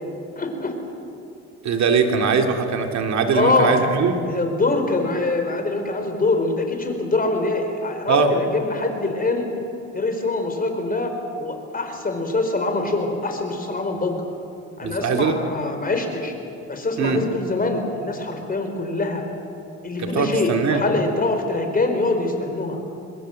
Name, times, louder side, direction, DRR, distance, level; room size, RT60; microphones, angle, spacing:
voice 1, 0.3-0.7 3.3-3.8 4.3-9.5 9.9-14.2 14.8-16.3 16.7-19.2 19.8-22.8, left 2 dB, 30° left, 5 dB, 4.5 m, -24 dB
voice 2, 1.6-4.1 8.1-8.3 14.8-15.4 17.0-17.2 20.0-20.8, right 5 dB, 65° right, 4 dB, 2.6 m, -21 dB
24.5 x 21.0 x 7.7 m, 2.7 s
cardioid pair, 90°, 30 cm